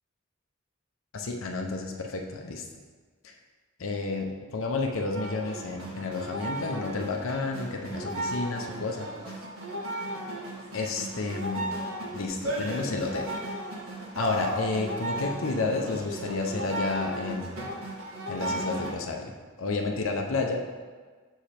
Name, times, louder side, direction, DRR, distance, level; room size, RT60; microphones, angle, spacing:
voice 1, 1.1-2.6 3.2-3.3 3.8-9.4 10.7-11.8 12.1-13.3 14.2-17.7 18.3-19.3 19.6-20.6, left 3 dB, 70° left, 3 dB, 0.6 m, -31 dB
sound 1, 5.1-18.9, right 1 dB, 90° right, 1.4 m, -35 dB
6.4 x 5.0 x 4.3 m, 1.5 s
head